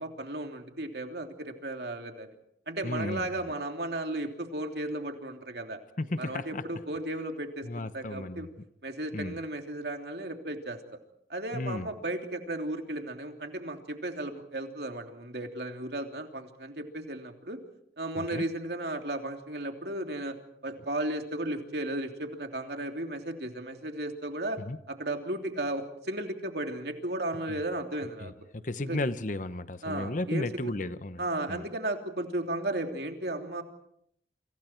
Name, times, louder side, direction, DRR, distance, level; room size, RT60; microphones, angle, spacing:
voice 1, 0.0-2.3 2.7-5.8 6.2-8.5 8.8-10.8 11.3-17.6 18.0-20.3 20.6-24.6 24.9-28.3 28.8-29.0 29.8-30.7 31.2-33.6, right 1 dB, 60° right, 3.2 m, -35 dB
voice 2, 2.8-3.3 6.0-6.6 7.6-8.5 9.1-9.4 11.5-11.9 18.2-18.4 24.6-24.8 27.5-27.6 28.2-31.2 31.5-31.6, left 2 dB, 45° left, 0.9 m, -34 dB
29.0 x 26.5 x 4.6 m
head